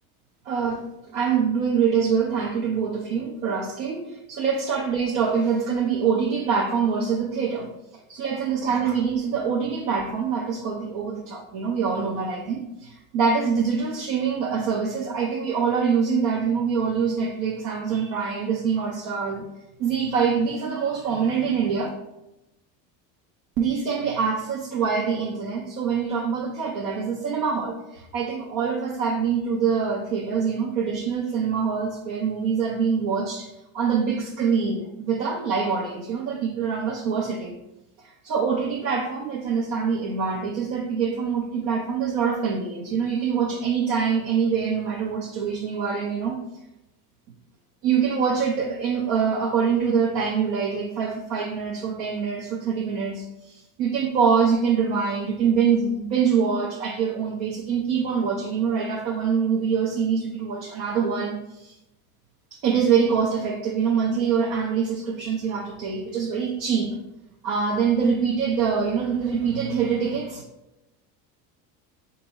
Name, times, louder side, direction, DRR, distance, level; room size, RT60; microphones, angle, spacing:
voice 1, 0.5-0.8 1.1-7.7 8.1-19.4 19.8-21.9 23.6-37.6 38.2-46.4 47.8-61.7 62.5-66.9 67.4-70.4, right 6 dB, 75° right, -2 dB, 0.8 m, -24 dB
3.6 x 2.8 x 4.0 m, 0.92 s
hypercardioid pair, 75°, 50 cm